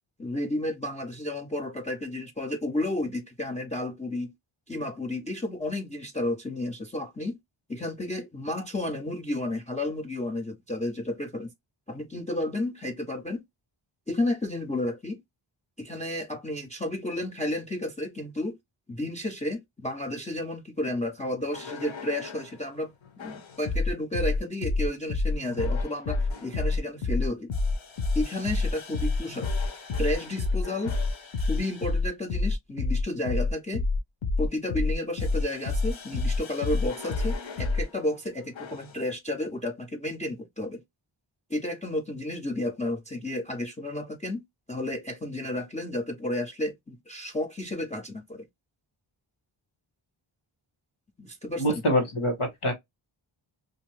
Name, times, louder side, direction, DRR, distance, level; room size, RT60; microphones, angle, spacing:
voice 1, 0.2-4.3 4.7-7.4 7.7-11.5 11.9-13.4 14.1-15.2 15.8-18.6 18.9-22.9 23.2-27.5 28.1-29.5 30.0-30.9 31.5-33.8 34.4-40.8 41.5-44.4 44.7-48.5 51.2-51.8, left 1 dB, 15° left, 0.4 m, -32 dB
sound 1, 21.5-22.5 23.2-37.9 38.5-38.9, left 3 dB, 65° left, 0.7 m, -28 dB
voice 2, 51.6-52.7, equal, 90° left, 1.4 m, -25 dB
2.6 x 2.6 x 3.1 m
wide cardioid pair, 65°, 49 cm